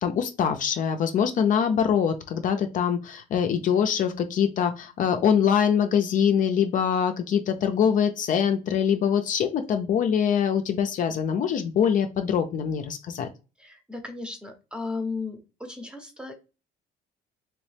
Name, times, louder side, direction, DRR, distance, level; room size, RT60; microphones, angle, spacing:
voice 1, 0.0-13.3, left 8 dB, 50° left, 6 dB, 0.4 m, -24 dB
voice 2, 13.6-16.3, left 3 dB, 5° right, 5 dB, 0.7 m, -35 dB
3.0 x 3.0 x 3.2 m, 0.31 s
cardioid pair, 110°, 17 cm